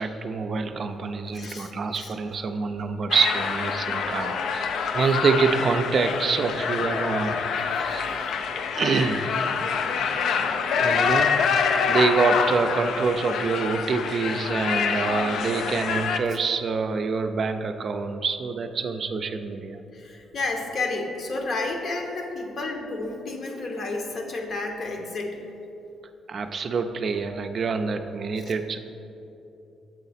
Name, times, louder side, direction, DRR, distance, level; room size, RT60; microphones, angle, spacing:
voice 1, 0.0-7.3 7.7-8.1 8.7-9.4 10.3-10.5 10.8-11.3 11.9-19.8 26.3-28.8, right 4 dB, 50° right, 7 dB, 0.3 m, -26 dB
voice 2, 1.3-2.1 19.9-25.4, left 3 dB, 50° left, 3 dB, 0.8 m, -31 dB
sound 1, 3.1-16.2, left 6 dB, 70° left, 0.3 m, -26 dB
7.5 x 3.9 x 4.1 m, 2.9 s
cardioid pair, 90°, 0 cm